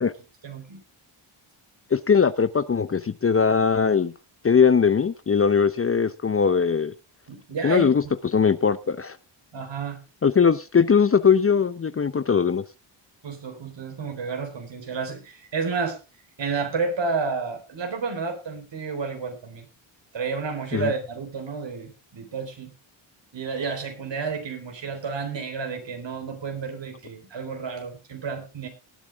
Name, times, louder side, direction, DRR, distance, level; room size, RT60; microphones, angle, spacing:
voice 1, 0.4-0.8 7.3-8.1 9.5-10.0 13.2-16.0 16.4-19.7 20.1-22.7 23.3-28.7, right 5 dB, 60° right, 6 dB, 4.0 m, -31 dB
voice 2, 1.9-4.1 4.4-6.9 7.6-8.0 8.3-9.2 10.2-12.6 20.7-20.9, left 6 dB, 25° left, 15 dB, 0.7 m, -20 dB
18.5 x 8.4 x 3.5 m, 0.30 s
cardioid pair, 60°, 50 cm